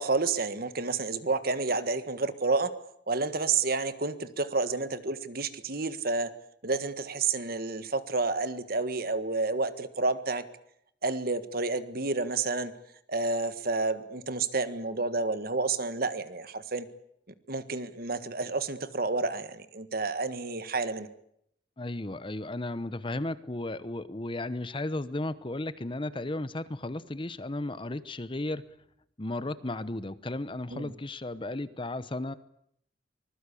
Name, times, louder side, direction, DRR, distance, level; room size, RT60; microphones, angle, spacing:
voice 1, 0.0-2.7 3.1-6.3 6.6-10.4 11.0-12.7 13.1-16.9 17.5-21.1 30.7-30.9, right 3 dB, 55° right, 12 dB, 1.6 m, -30 dB
voice 2, 21.8-28.6 29.2-32.3, left 2 dB, 25° left, 15 dB, 0.9 m, -34 dB
25.0 x 20.5 x 8.5 m, 0.73 s
head